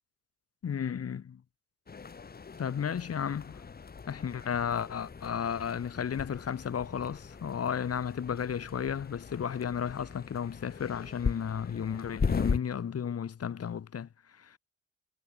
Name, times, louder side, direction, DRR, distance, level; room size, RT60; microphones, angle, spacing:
voice 1, 0.6-1.4 2.6-3.6 4.1-14.1 14.4-14.6, left 8 dB, 50° left, 6.7 m, -33 dB
sound 1, 1.9-12.6, left 5 dB, 30° left, 2.0 m, -38 dB
cardioid pair, 90°, 30 cm